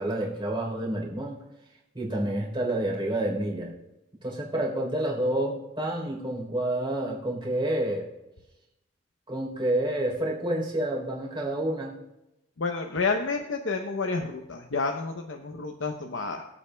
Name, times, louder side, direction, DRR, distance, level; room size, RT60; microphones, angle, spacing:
voice 1, 0.0-1.4 1.9-3.7 4.2-8.1 9.3-12.0, right 1 dB, 25° right, -2 dB, 3.7 m, -29 dB
voice 2, 12.6-16.4, left 4 dB, 80° left, 3 dB, 0.8 m, -30 dB
23.5 x 8.6 x 2.3 m, 0.96 s
head